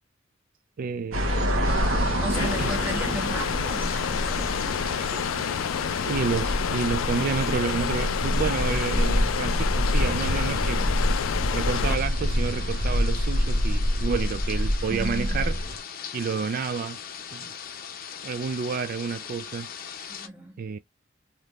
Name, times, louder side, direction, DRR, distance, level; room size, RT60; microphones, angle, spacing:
voice 1, 0.8-1.3 2.4-2.8 6.0-10.8 11.5-15.6 16.1-17.0 17.3-17.5 18.2-19.7 20.6-20.8, right 5 dB, 45° right, 0.3 m, -29 dB
sound 1, 1.1-15.8, equal, 90° right, 1.0 m, -27 dB
sound 2, 1.6-20.3, left 8 dB, 50° left, 0.6 m, -40 dB
voice 2, 2.2-4.9 14.9-15.4 20.2-20.6, equal, 10° right, 1.1 m, -35 dB
sound 3, 2.3-12.0, left 8 dB, 90° left, 0.4 m, -29 dB
3.5 x 2.9 x 2.4 m
head